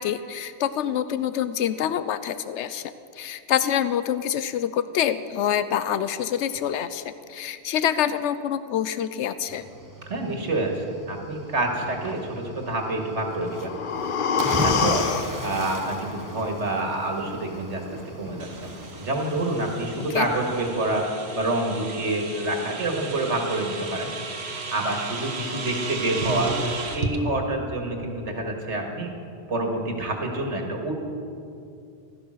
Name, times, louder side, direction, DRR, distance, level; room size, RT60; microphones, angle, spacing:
voice 1, 0.0-9.6 20.1-20.3, left 9 dB, 85° left, 13 dB, 0.9 m, -26 dB
Cricket / Waves surf, 9.5-20.7, right 1 dB, 20° right, 0.9 m, -37 dB
voice 2, 10.1-13.7 14.6-15.1 15.4-18.7 19.0-24.1 24.7-29.1 29.5-30.9, right 2 dB, 90° right, 2 dB, 2.2 m, -27 dB
sound 1, 13.2-17.2 17.5-17.6, left 6 dB, 55° left, 0.8 m, -28 dB
sound 2, 18.4-27.2, right 3 dB, 65° right, 1.5 m, -34 dB
16.0 x 12.5 x 6.4 m, 2.5 s
omnidirectional pair, 1.2 m